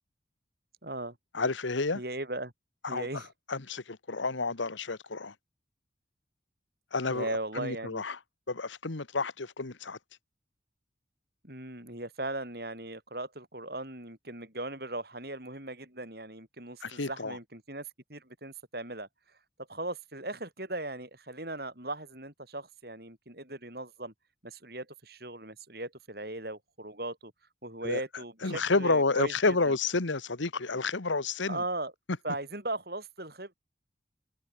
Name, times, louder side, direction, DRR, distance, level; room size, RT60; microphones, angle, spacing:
voice 1, 0.8-1.2 1.9-2.5 2.9-3.3 7.1-8.0 11.4-19.1 19.7-24.1 24.4-27.3 27.6-29.8 31.5-31.9 32.2-33.5, right 2 dB, 55° right, 7.6 m, -38 dB
voice 2, 1.3-2.0 2.8-3.2 3.5-5.3 6.9-7.3 7.5-8.2 8.5-10.0 16.8-17.4 27.8-28.0 28.4-31.6, left 3 dB, 85° left, 1.4 m, -30 dB
head